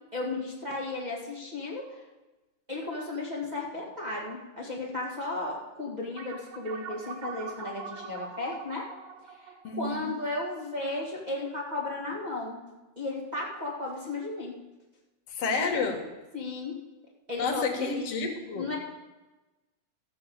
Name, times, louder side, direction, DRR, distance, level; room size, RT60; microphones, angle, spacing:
voice 1, 0.1-2.0 2.7-8.9 9.4-12.6 12.9-14.6 16.3-16.8 17.3-18.1 18.5-18.8, left 2 dB, 20° right, -3 dB, 1.0 m, -34 dB
sound 1, 6.2-11.0, right 6 dB, 80° right, 2.5 m, -43 dB
voice 2, 9.6-10.1 15.3-16.1 17.4-18.7, left 4 dB, 55° left, 3 dB, 2.0 m, -30 dB
13.5 x 6.7 x 7.2 m, 1.1 s
omnidirectional pair, 4.1 m